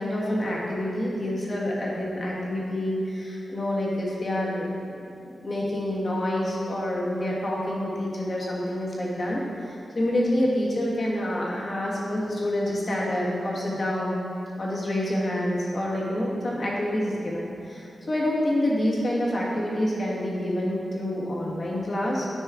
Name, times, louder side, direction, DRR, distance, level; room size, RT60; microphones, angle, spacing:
voice 1, 0.0-14.2 14.6-22.3, left 1 dB, 45° left, -4 dB, 1.6 m, -27 dB
9.5 x 5.4 x 3.7 m, 2.7 s
wide cardioid pair, 100°, 0 cm